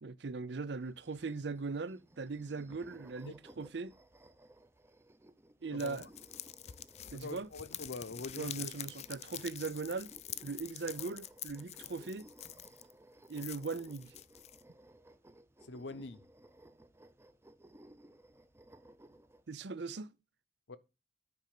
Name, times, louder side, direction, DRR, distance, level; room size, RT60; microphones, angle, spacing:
voice 1, 0.0-3.9 5.6-6.1 7.1-7.5 8.4-10.1 10.4-12.3 13.3-14.1 19.5-20.1, right 4 dB, 65° right, 0.6 m, -39 dB
sound 1, 0.8-19.5, right 1 dB, 15° right, 0.7 m, -59 dB
voice 2, 5.7-6.0 7.1-8.7 15.6-16.2 20.7-20.8, left 3 dB, 75° left, 0.9 m, -44 dB
sound 2, 5.8-12.9 13.3-14.6, left 12 dB, 35° left, 0.4 m, -46 dB
9.4 x 5.2 x 6.6 m
head